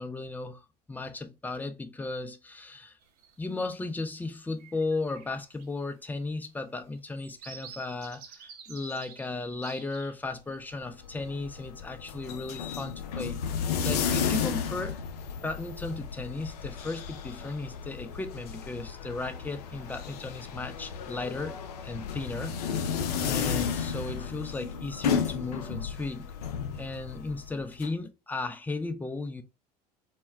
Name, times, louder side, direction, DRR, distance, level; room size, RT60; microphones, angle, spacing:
voice 1, 0.0-3.0 3.4-13.4 13.8-15.0 15.4-21.6 21.8-22.9 23.2-26.3 26.8-29.4, left 3 dB, 10° left, 0.4 m, -35 dB
sound 1, 3.0-3.6 4.1-4.3 4.5-10.6 11.0-11.7, right 7 dB, 70° right, 0.4 m, -50 dB
sound 2, 10.8-27.9, left 7 dB, 70° left, 0.5 m, -33 dB
2.2 x 2.1 x 3.3 m
figure-of-eight pair, 70°, 21 cm